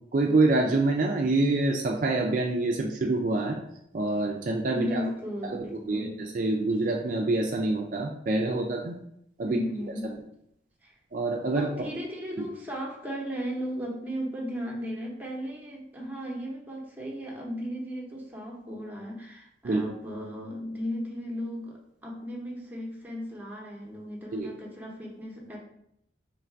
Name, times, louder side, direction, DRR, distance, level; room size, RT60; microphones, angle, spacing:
voice 1, 0.1-3.6 3.9-5.0 5.5-9.0 9.4-9.6 11.1-11.9 12.4-12.5 19.6-19.8 24.3-24.5, right 2 dB, 50° right, 1 dB, 0.4 m, -26 dB
voice 2, 4.7-6.2 9.5-10.2 10.8-10.9 11.5-25.6, equal, 10° right, -3 dB, 0.7 m, -36 dB
3.2 x 2.5 x 4.4 m, 0.77 s
head